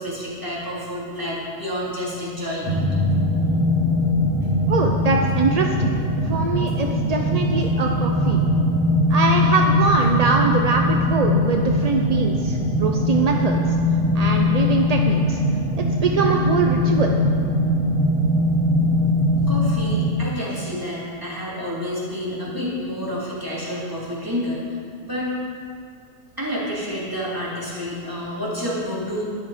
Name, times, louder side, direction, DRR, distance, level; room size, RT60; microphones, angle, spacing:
voice 1, 0.0-2.8 7.6-7.7 8.4-8.6 19.5-25.3 26.4-29.2, equal, 15° right, -8 dB, 3.2 m, -29 dB
sound 1, 2.6-20.1, left 1 dB, 90° right, 2.0 m, -21 dB
voice 2, 4.7-6.0 6.3-8.4 9.1-13.6 14.1-15.4 15.8-17.2, right 4 dB, 45° right, 2 dB, 0.6 m, -23 dB
11.5 x 11.0 x 5.0 m, 2.3 s
omnidirectional pair, 1.3 m